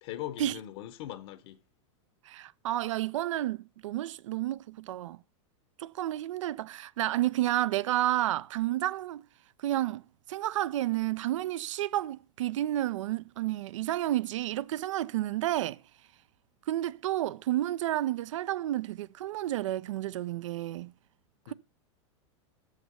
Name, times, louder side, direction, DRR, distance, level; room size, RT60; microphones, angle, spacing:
voice 1, 0.0-1.6 21.5-21.6, left 13 dB, 60° left, 0.8 m, -40 dB
voice 2, 2.3-5.2 5.8-9.2 9.6-10.0 10.3-15.8 16.7-20.9 21.5-21.6, right 14 dB, 85° right, 0.4 m, -31 dB
6.9 x 6.5 x 6.7 m
supercardioid pair, 130°, 16 cm